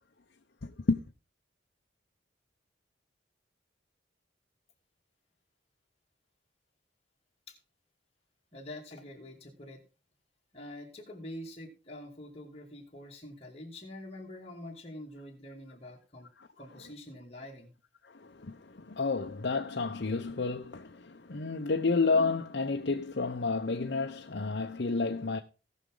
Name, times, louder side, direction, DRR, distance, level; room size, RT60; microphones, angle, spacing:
voice 1, 0.6-1.0 16.4-16.5 18.0-25.4, left 4 dB, 60° left, 0.7 m, -31 dB
voice 2, 8.5-9.8 10.5-16.3 16.6-17.7, left 1 dB, 30° left, 2.6 m, -46 dB
18.0 x 6.2 x 3.8 m
head